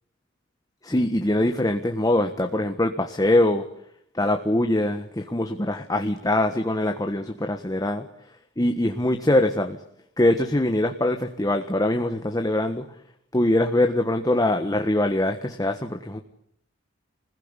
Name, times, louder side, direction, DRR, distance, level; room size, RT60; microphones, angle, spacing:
voice 1, 0.8-3.6 4.1-8.0 8.6-9.8 10.2-12.8 13.3-16.2, left 1 dB, 20° left, 5 dB, 1.5 m, -23 dB
27.5 x 20.5 x 9.9 m, 0.73 s
head